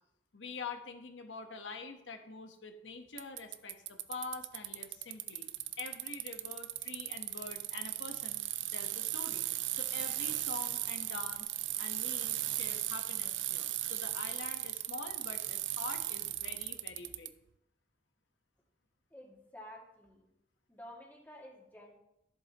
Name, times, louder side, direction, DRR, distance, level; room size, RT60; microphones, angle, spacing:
voice 1, 0.3-5.5 5.8-8.4 8.7-9.5 9.7-17.3, left 4 dB, 90° left, 6 dB, 1.1 m, -45 dB
Bicycle, 3.2-17.3, right 14 dB, 80° right, 0.5 m, -37 dB
voice 2, 19.1-20.3 20.7-22.0, left 1 dB, 10° left, -2 dB, 2.1 m, -51 dB
13.5 x 7.8 x 3.0 m, 0.83 s
head